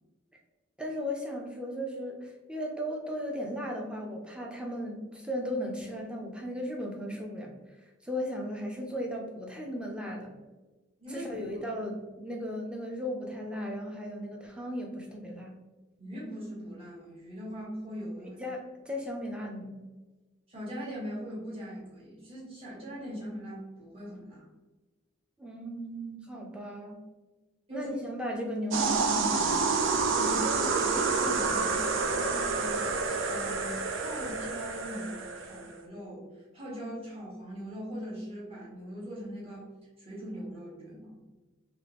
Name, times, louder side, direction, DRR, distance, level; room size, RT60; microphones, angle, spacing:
voice 1, 0.8-10.3 11.1-15.5 18.4-19.7 25.4-27.0 27.7-29.7, equal, 5° right, 0 dB, 0.5 m, -36 dB
voice 2, 11.0-11.6 16.0-18.4 20.5-24.4 27.7-27.9 30.1-33.0 33.3-36.2 36.5-39.7 40.0-41.2, equal, 30° right, -7 dB, 1.4 m, -40 dB
sound 1, 28.7-35.6, right 4 dB, 70° right, 0.4 m, -28 dB
3.4 x 3.0 x 2.9 m, 1.2 s
head